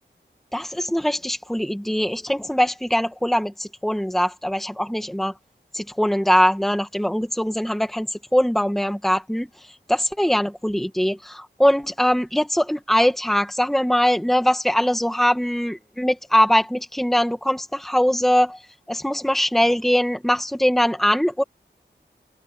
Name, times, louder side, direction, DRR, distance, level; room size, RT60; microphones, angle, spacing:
voice 1, 0.5-5.3 5.7-9.5 9.9-18.6 18.9-21.4, equal, ahead, 1.9 m, -21 dB
open air
wide cardioid pair, 75°, 19 cm